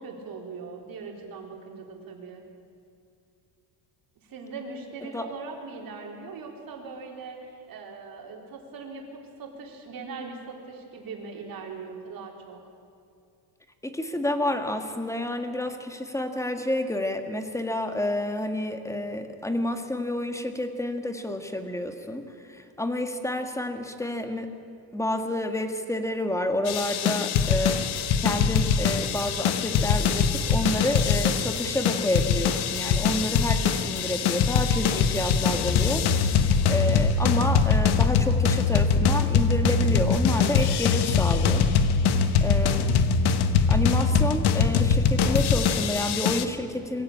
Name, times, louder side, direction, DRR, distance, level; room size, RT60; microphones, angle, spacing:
voice 1, 0.0-2.4 4.3-12.6 42.0-42.5, right 4 dB, 55° right, 1 dB, 4.2 m, -40 dB
voice 2, 13.8-24.5 24.9-27.8 28.2-36.3 36.7-41.6 42.4-42.9 43.7-47.0, left 1 dB, 5° left, 6 dB, 1.7 m, -29 dB
sound 1, 26.7-46.4, left 6 dB, 65° left, 1.3 m, -23 dB
23.0 x 16.0 x 8.7 m, 2.5 s
cardioid pair, 120°, 42 cm